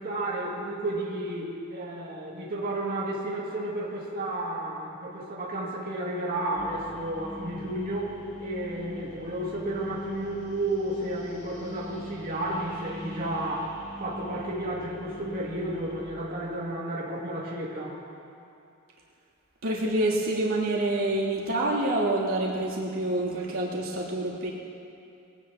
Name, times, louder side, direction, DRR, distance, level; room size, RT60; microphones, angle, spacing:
voice 1, 0.0-8.1 8.4-13.7 14.0-17.9, right 1 dB, 45° right, -5 dB, 2.3 m, -32 dB
sound 1, 6.6-16.1, left 1 dB, 40° left, 3.8 m, -43 dB
voice 2, 19.6-24.5, right 1 dB, 90° right, -6 dB, 3.1 m, -27 dB
22.5 x 18.0 x 3.0 m, 2.6 s
head